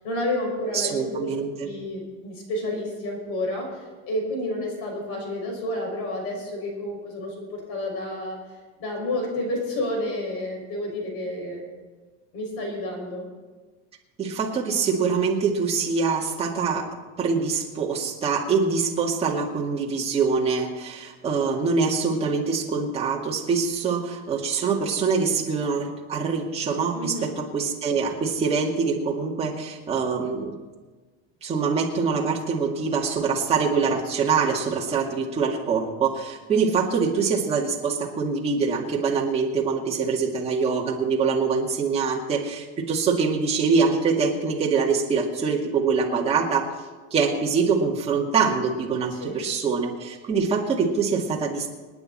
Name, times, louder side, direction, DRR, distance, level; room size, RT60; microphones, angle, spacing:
voice 1, 0.0-1.3 1.6-8.4 8.8-11.6 12.3-13.3 26.9-27.3 49.1-49.4, left 1 dB, 40° left, 1 dB, 5.9 m, -30 dB
voice 2, 0.7-1.7 14.2-16.9 17.2-30.5 31.4-46.7 47.1-51.7, right 5 dB, 15° right, -2 dB, 2.0 m, -24 dB
28.0 x 9.4 x 4.2 m, 1.3 s
supercardioid pair, 160°, 34 cm